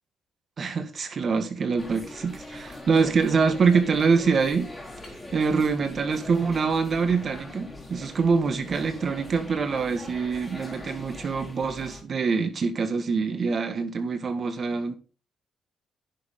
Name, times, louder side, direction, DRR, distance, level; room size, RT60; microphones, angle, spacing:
voice 1, 0.6-4.7 5.3-14.9, right 5 dB, 45° right, 1.8 m, -25 dB
sound 1, 1.8-12.0, left 2 dB, 15° left, 4.2 m, -42 dB
10.5 x 6.9 x 3.9 m
cardioid pair, 90°, 0 cm